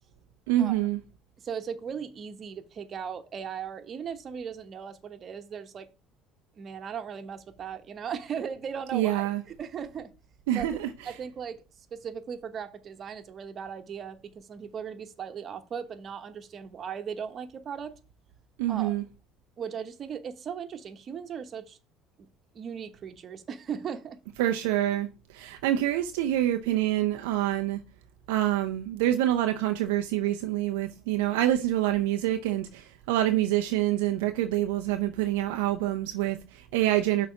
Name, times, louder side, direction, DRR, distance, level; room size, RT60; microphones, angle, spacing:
voice 1, 0.5-1.0 8.9-9.4 10.5-11.1 18.6-19.0 24.4-25.1 25.3-27.8 28.3-37.3, right 13 dB, 75° right, 0.5 m, -26 dB
voice 2, 1.4-5.9 6.6-9.3 9.6-10.1 10.5-10.7 11.0-11.6 11.9-17.9 18.7-18.9 19.6-21.8 22.2-22.3 22.5-24.2, right 7 dB, 45° right, 1.1 m, -37 dB
6.2 x 4.1 x 5.7 m
hypercardioid pair, 70°, 0 cm